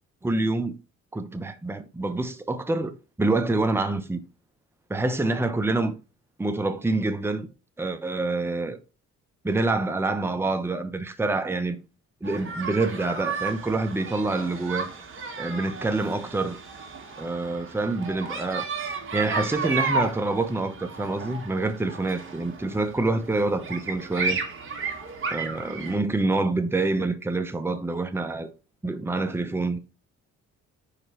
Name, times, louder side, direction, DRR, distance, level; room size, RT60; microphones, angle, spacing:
voice 1, 0.2-0.7 1.1-4.2 4.9-5.9 6.4-7.5 7.8-8.8 9.4-11.8 12.2-14.9 15.4-16.6 17.2-18.7 19.1-24.4 25.3-28.5 28.8-29.8, right 2 dB, 10° right, 0.8 m, -26 dB
sound 1, 12.2-26.0, right 4 dB, 40° right, 1.7 m, -33 dB
5.0 x 4.7 x 4.3 m
cardioid pair, 90°, 30 cm